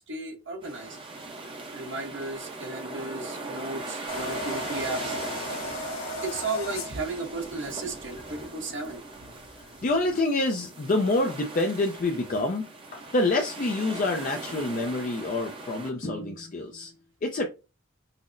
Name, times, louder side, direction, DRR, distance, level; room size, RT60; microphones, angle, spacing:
voice 1, 0.1-1.0 1.7-5.2 6.2-9.0, right 3 dB, 55° right, 0.9 m, -34 dB
sound 1, 0.6-15.9, right 2 dB, 25° right, 0.6 m, -40 dB
sound 2, 4.1-10.1, left 1 dB, 80° left, 1.3 m, -36 dB
voice 2, 9.8-16.9 17.2-17.5, left 2 dB, 40° left, 0.4 m, -27 dB
5.6 x 2.0 x 2.5 m
head